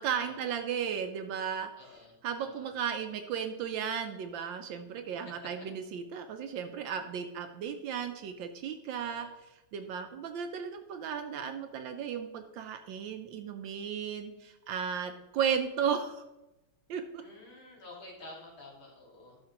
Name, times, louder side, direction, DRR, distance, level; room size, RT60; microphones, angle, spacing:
voice 1, 0.0-16.2 16.9-17.2, right 7 dB, 75° right, 7 dB, 1.2 m, -35 dB
voice 2, 1.8-2.1 2.4-2.7 9.0-9.3 17.2-19.4, left 2 dB, 75° left, -3 dB, 3.0 m, -50 dB
12.0 x 5.8 x 2.9 m, 0.97 s
omnidirectional pair, 2.3 m